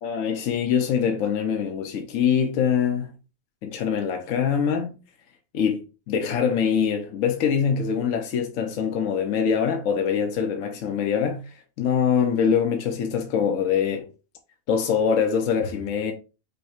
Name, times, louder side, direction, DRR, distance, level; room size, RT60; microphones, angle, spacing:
voice 1, 0.0-3.1 3.6-4.9 5.5-5.8 6.1-11.4 11.8-14.1 14.7-16.1, left 7 dB, 70° left, 1.1 m, -23 dB
5.5 x 2.2 x 4.3 m
omnidirectional pair, 1.4 m